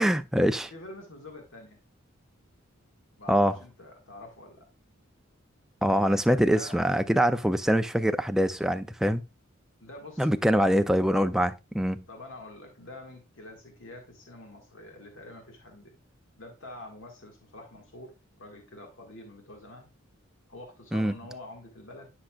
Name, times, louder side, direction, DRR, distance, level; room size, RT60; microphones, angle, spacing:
voice 1, 0.0-0.7 3.3-3.5 5.8-9.2 10.2-12.0 20.9-21.1, equal, ahead, 0.3 m, -24 dB
voice 2, 0.7-1.8 3.2-4.7 6.3-6.8 9.8-10.6 12.1-15.9 16.4-19.9 20.5-22.1, left 2 dB, 70° left, 1.7 m, -46 dB
10.5 x 5.7 x 2.3 m
head